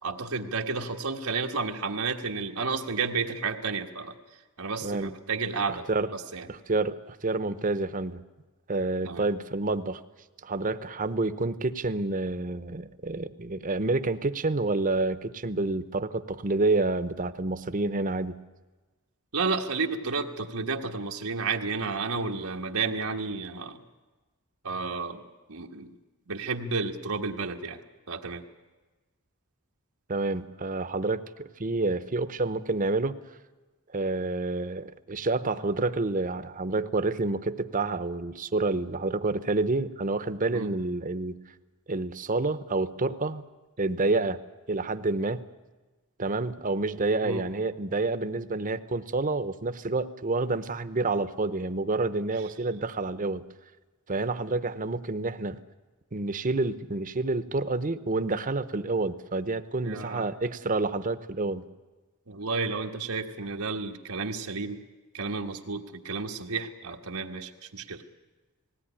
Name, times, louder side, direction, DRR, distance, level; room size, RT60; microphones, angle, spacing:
voice 1, 0.0-4.1 4.6-6.5 9.0-9.2 19.3-23.8 24.6-25.2 25.5-26.0 26.3-27.8 28.1-28.4 40.5-40.7 47.2-47.4 59.8-60.3 62.3-64.8 65.1-68.0, right 4 dB, 90° right, 2 dB, 1.4 m, -31 dB
voice 2, 4.8-5.1 5.9-6.1 6.5-8.2 8.7-10.0 10.4-18.4 30.1-33.2 33.9-41.4 41.9-43.4 43.8-44.4 44.7-45.4 46.2-53.5 54.1-55.6 56.1-61.7, right 3 dB, 40° right, 12 dB, 0.8 m, -28 dB
19.0 x 16.5 x 10.0 m, 1.2 s
head